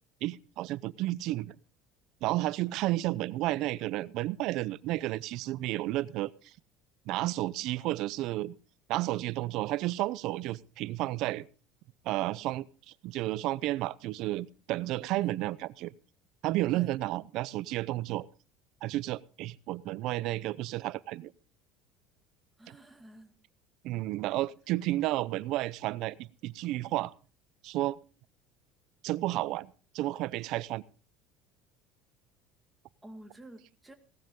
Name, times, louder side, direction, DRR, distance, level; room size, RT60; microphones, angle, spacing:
voice 1, 0.2-1.6 2.2-6.3 7.1-8.6 8.9-11.5 12.0-12.6 13.0-15.9 16.4-18.3 18.8-21.3 23.8-27.1 27.6-28.0 29.0-30.8, right 16 dB, 55° right, 19 dB, 0.6 m, -32 dB
voice 2, 22.6-23.4 33.0-33.9, right 1 dB, 5° right, 5 dB, 1.9 m, -49 dB
17.5 x 13.0 x 3.7 m, 0.36 s
cardioid pair, 155°, 0 cm